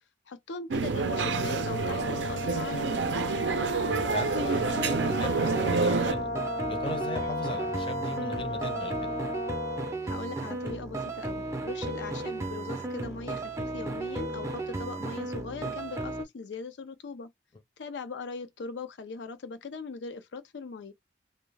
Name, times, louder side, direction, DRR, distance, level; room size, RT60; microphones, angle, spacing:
voice 1, 0.3-2.9 10.0-17.3 17.8-20.9, left 4 dB, 85° left, 0.5 m, -40 dB
sound 1, 0.7-6.1, right 4 dB, 90° right, 0.4 m, -28 dB
Brass instrument, 1.0-9.9, left 1 dB, 60° left, 0.9 m, -34 dB
voice 2, 3.9-6.3 6.7-9.2, left 2 dB, 30° left, 0.6 m, -38 dB
sound 2, 4.6-16.2, right 2 dB, 15° right, 0.5 m, -34 dB
2.2 x 2.1 x 3.2 m
head